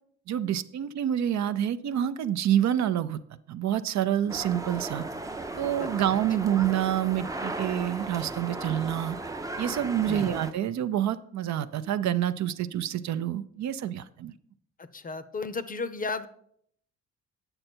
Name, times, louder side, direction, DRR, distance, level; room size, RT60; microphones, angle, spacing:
voice 1, 0.3-3.2 3.5-5.0 5.6-9.2 9.6-14.3, right 10 dB, 65° right, 12 dB, 0.6 m, -27 dB
sound 1, 4.3-10.5, right 2 dB, 10° right, 0.5 m, -36 dB
voice 2, 5.8-6.2 10.1-10.3 14.8-16.3, left 4 dB, 30° left, 13 dB, 0.6 m, -34 dB
8.8 x 6.6 x 4.4 m, 0.66 s
cardioid pair, 90°, 30 cm